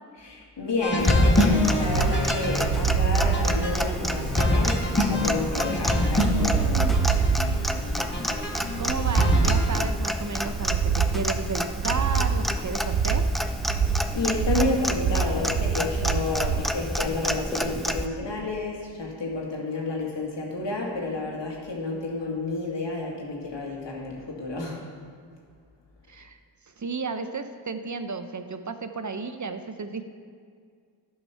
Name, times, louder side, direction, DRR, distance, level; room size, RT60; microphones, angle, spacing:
voice 1, 0.2-7.0 14.1-24.8, left 2 dB, 70° left, -2 dB, 2.1 m, -30 dB
sound 1, 0.8-9.6, left 1 dB, 25° left, 2.6 m, -25 dB
Clock, 1.0-18.1, equal, ahead, 0.6 m, -30 dB
sound 2, 1.8-16.7, right 6 dB, 85° right, 0.6 m, -26 dB
voice 2, 8.8-13.2 26.1-26.4 26.8-30.1, right 4 dB, 40° right, 9 dB, 0.7 m, -33 dB
10.5 x 5.6 x 5.7 m, 2.1 s
cardioid pair, 40°, 44 cm